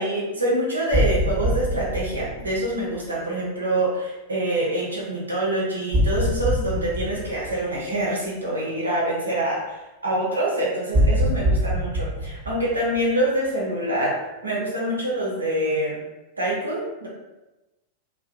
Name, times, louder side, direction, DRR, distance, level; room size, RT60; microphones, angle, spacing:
voice 1, 0.0-9.6 10.0-16.0 16.4-17.1, right 1 dB, 80° right, -4 dB, 0.6 m, -25 dB
sound 1, 0.9-3.0 5.9-8.0 10.9-13.5, equal, 10° right, 0.9 m, -24 dB
2.6 x 2.1 x 2.4 m, 1.0 s
figure-of-eight pair, 90°, 0 cm